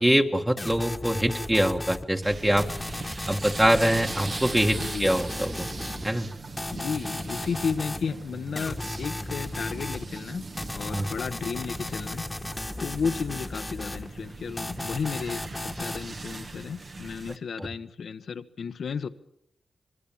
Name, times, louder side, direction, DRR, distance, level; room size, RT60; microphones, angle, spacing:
voice 1, 0.0-2.7 3.3-5.7 6.0-6.3 10.9-11.1 17.6-17.7, right 1 dB, 15° right, 2 dB, 1.7 m, -24 dB
sound 1, 0.6-2.0 2.6-6.1 6.6-8.1 8.6-10.0 10.6-14.1 14.6-16.1, left 2 dB, 20° left, 1.6 m, -35 dB
sound 2, 2.2-17.4, right 3 dB, 50° right, 1.7 m, -40 dB
voice 2, 4.8-5.1 6.7-12.2 12.8-19.1, left 6 dB, 75° left, 11 dB, 1.3 m, -33 dB
27.0 x 21.5 x 7.4 m, 0.75 s
cardioid pair, 65°, 0 cm